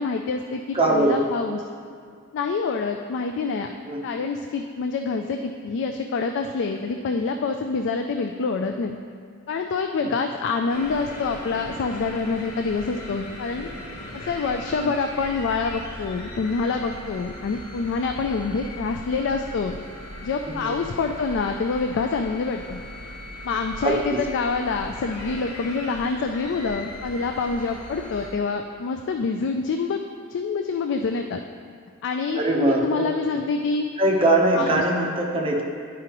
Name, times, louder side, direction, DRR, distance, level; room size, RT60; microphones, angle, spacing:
voice 1, 0.0-1.6 2.3-3.7 4.0-9.0 9.5-13.7 14.1-19.8 20.2-22.8 23.4-30.0 30.3-31.4 32.0-33.9 34.6-34.8, left 4 dB, 55° left, 4 dB, 0.3 m, -26 dB
voice 2, 0.7-1.2 3.9-4.0 10.0-10.1 14.8-14.9 20.5-20.8 23.8-24.2 32.3-33.1 34.0-35.6, right 1 dB, 25° right, -2 dB, 0.9 m, -21 dB
sound 1, 10.7-28.3, left 1 dB, 80° left, 1.0 m, -38 dB
11.0 x 4.9 x 2.9 m, 2.2 s
head